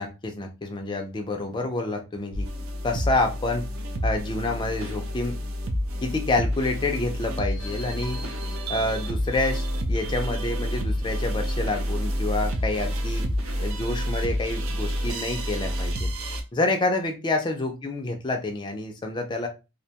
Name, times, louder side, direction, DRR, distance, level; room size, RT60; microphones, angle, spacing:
voice 1, 0.0-2.5 2.8-3.7 4.0-5.4 6.0-8.2 8.7-13.2 13.6-16.1 16.5-19.5, left 2 dB, 20° left, 4 dB, 0.4 m, -28 dB
sound 1, 2.3-16.4, equal, 60° right, 0.5 m, -29 dB
2.4 x 2.2 x 2.8 m, 0.28 s
head